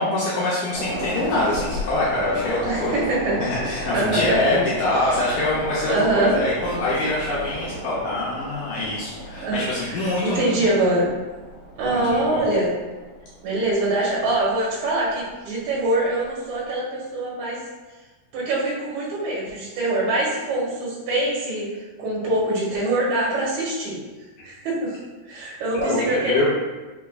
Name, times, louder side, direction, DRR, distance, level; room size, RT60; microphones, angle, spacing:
voice 1, 0.0-3.0 3.4-10.7 11.9-12.4 25.7-26.5, left 2 dB, 85° left, -7 dB, 1.7 m, -24 dB
sound 1, 0.7-15.3 15.6-15.8, equal, 55° left, 1.9 m, -34 dB
voice 2, 2.6-3.4 3.8-4.4 4.9-5.3 5.9-6.4 9.4-11.1 11.8-12.7 13.4-17.6 18.3-21.7 22.0-24.0 24.4-25.0 25.3-26.5, right 2 dB, 75° right, -5 dB, 1.8 m, -24 dB
5.8 x 3.3 x 2.3 m, 1.2 s
omnidirectional pair, 4.4 m